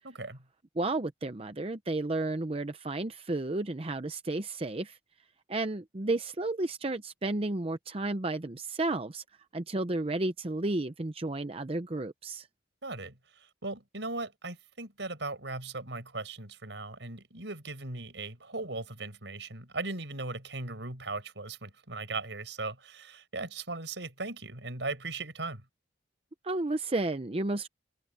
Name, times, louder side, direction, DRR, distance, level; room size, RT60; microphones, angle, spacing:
voice 1, 0.0-0.4 12.8-25.6, right 3 dB, 75° right, 5.4 m, -38 dB
voice 2, 0.8-5.0 5.5-9.2 9.5-12.5 26.4-27.7, right 2 dB, 30° right, 0.7 m, -32 dB
head